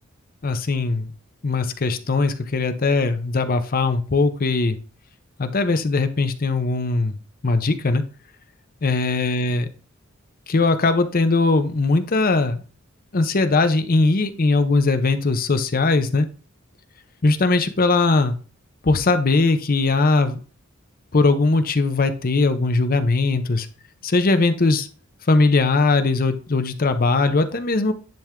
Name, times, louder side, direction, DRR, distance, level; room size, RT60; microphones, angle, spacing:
voice 1, 0.4-1.1 1.4-4.8 5.4-7.2 7.4-8.0 8.8-9.7 10.5-12.6 13.1-16.3 17.2-18.4 18.9-20.4 21.1-23.7 24.0-24.9 25.3-27.9, left 3 dB, 45° left, 9 dB, 0.7 m, -20 dB
10.5 x 3.5 x 3.6 m, 0.38 s
head